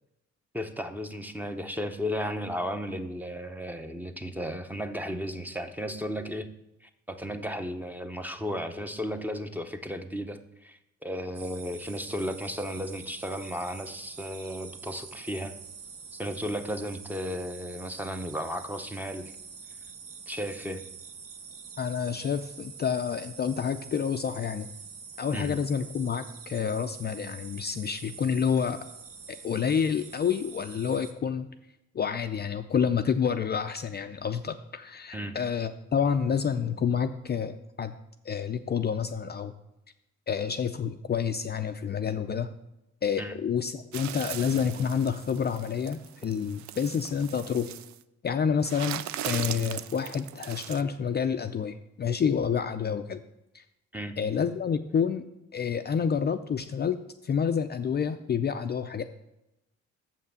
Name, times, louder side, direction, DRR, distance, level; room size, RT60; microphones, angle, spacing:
voice 1, 0.5-6.5 7.1-15.5 16.1-19.2 20.3-20.8 25.3-25.5 35.1-35.4 43.2-43.3 53.9-54.1, equal, 5° right, 7 dB, 0.7 m, -34 dB
sound 1, 11.3-31.1, right 6 dB, 50° right, 1.0 m, -46 dB
voice 2, 21.8-24.7 25.2-28.9 29.3-31.5 31.9-37.9 38.2-39.5 40.3-42.5 43.0-47.7 48.2-53.2 53.5-53.6 54.2-55.2 55.5-59.0, left 7 dB, 35° left, 7 dB, 0.5 m, -28 dB
sound 2, 43.9-48.0 48.6-50.8, right 12 dB, 70° right, 0.5 m, -39 dB
7.1 x 5.6 x 6.8 m, 0.89 s
cardioid pair, 90°, 30 cm